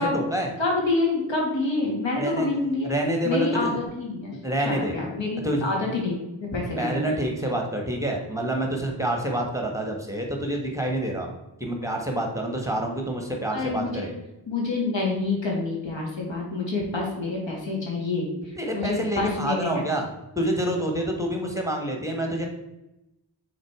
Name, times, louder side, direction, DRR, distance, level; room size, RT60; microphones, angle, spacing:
voice 1, 0.0-0.5 2.2-2.5 2.9-3.8 4.4-4.9 5.4-5.7 6.8-11.3 11.6-14.1 18.6-20.0 20.3-22.5, right 1 dB, 5° right, 1 dB, 1.4 m, -27 dB
voice 2, 0.6-2.9 3.2-4.4 4.6-7.2 13.5-14.1 14.5-19.8, left 3 dB, 70° left, -2 dB, 2.4 m, -27 dB
6.5 x 4.0 x 4.8 m, 0.94 s
cardioid pair, 55°, 47 cm